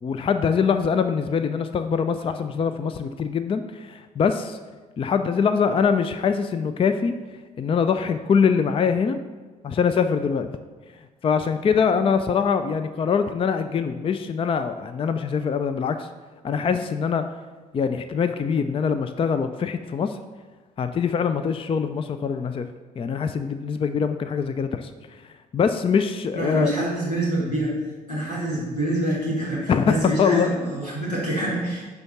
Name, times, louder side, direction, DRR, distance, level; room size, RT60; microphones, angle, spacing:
voice 1, 0.0-4.6 5.0-7.1 7.6-9.2 9.6-10.5 11.2-16.1 16.4-17.3 17.7-20.2 20.8-22.7 23.0-24.9 25.5-26.7 29.7-30.5, left 6 dB, 30° left, 10 dB, 0.5 m, -23 dB
voice 2, 26.3-27.7 28.1-31.8, right 1 dB, 85° left, -6 dB, 1.9 m, -26 dB
10.5 x 3.6 x 5.8 m, 1.3 s
figure-of-eight pair, 45°, 20 cm